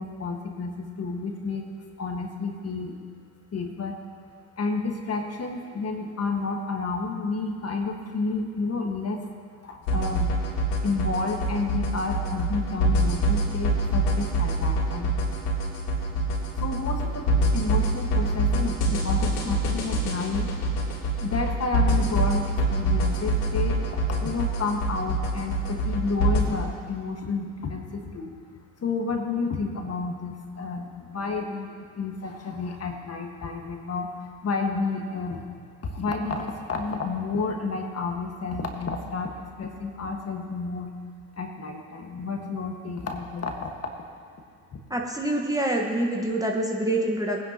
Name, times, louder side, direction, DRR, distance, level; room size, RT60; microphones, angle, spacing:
voice 1, 0.0-1.6 2.0-3.0 3.5-4.0 4.6-9.2 9.6-10.4 10.8-15.2 16.6-17.3 17.5-20.5 21.2-28.3 28.8-35.4 35.8-40.9 41.3-43.7 44.7-44.8, left 4 dB, 35° left, 3 dB, 1.6 m, -30 dB
sound 1, 9.9-26.4, right 1 dB, 75° left, 3.0 m, -25 dB
voice 2, 44.9-47.4, right 1 dB, 10° right, 0 dB, 1.3 m, -26 dB
18.5 x 10.0 x 2.9 m, 2.1 s
hypercardioid pair, 70°, 45 cm